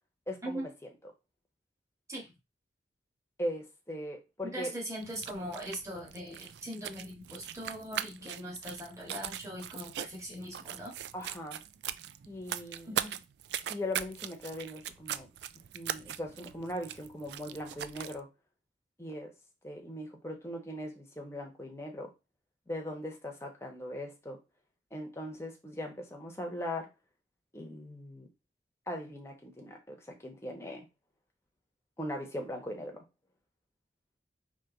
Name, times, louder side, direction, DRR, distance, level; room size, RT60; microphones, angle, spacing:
voice 1, 0.3-0.7 3.4-4.7 11.1-11.6 12.3-13.0 13.7-15.3 15.7-18.3 19.0-19.3 19.6-22.1 22.7-24.4 24.9-26.9 27.5-28.3 28.9-30.9 32.0-33.0, left 1 dB, 15° left, 2 dB, 1.0 m, -39 dB
voice 2, 4.4-10.9 12.9-13.2, equal, 15° right, -3 dB, 1.6 m, -40 dB
sound 1, 5.0-18.2, right 10 dB, 65° right, 0.3 m, -41 dB
4.5 x 3.0 x 3.9 m, 0.25 s
head